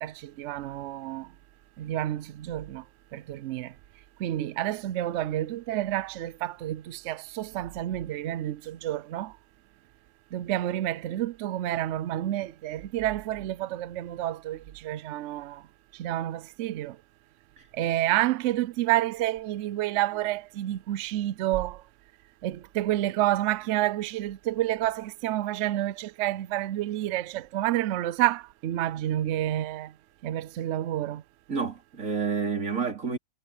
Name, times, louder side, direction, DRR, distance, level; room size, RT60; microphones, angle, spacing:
voice 1, 0.0-1.3 1.8-2.8 3.1-3.7 4.2-9.3 10.3-15.6 16.0-17.0 17.7-21.8 22.4-29.9 30.2-31.2, right 14 dB, 80° right, 0.6 m, -29 dB
voice 2, 31.5-33.2, right 5 dB, 50° right, 3.2 m, -29 dB
omnidirectional pair, 1.8 m